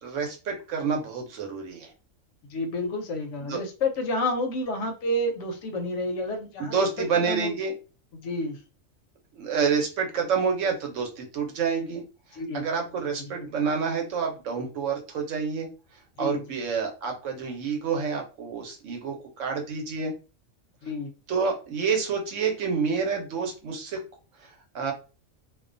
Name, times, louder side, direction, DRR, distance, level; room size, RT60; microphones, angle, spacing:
voice 1, 0.0-1.9 3.5-3.6 6.6-7.7 9.3-12.0 12.5-15.7 16.2-20.1 21.3-24.0 24.4-24.9, right 5 dB, 70° right, 1.0 m, -28 dB
voice 2, 2.5-7.5 8.1-8.6 12.4-12.6 16.2-16.4 20.8-21.1, left 1 dB, 70° left, 0.8 m, -30 dB
2.4 x 2.2 x 2.5 m
omnidirectional pair, 1.4 m